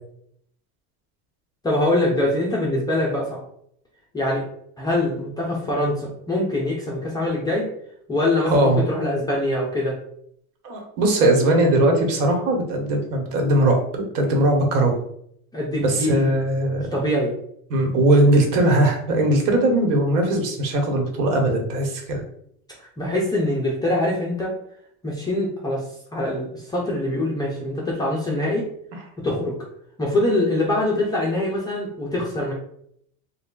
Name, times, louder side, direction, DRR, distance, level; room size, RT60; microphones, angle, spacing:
voice 1, 1.6-3.4 4.1-4.4 4.8-7.7 8.1-10.0 15.5-16.4 16.9-17.3 22.8-24.6 25.0-28.7 29.2-29.6 30.0-32.5, left 1 dB, 10° left, -5 dB, 0.3 m, -24 dB
voice 2, 8.4-8.8 10.6-15.0 15.8-16.9 17.7-22.2, right 1 dB, 80° right, 3 dB, 1.1 m, -19 dB
3.2 x 2.2 x 3.7 m, 0.69 s
supercardioid pair, 140°, 44 cm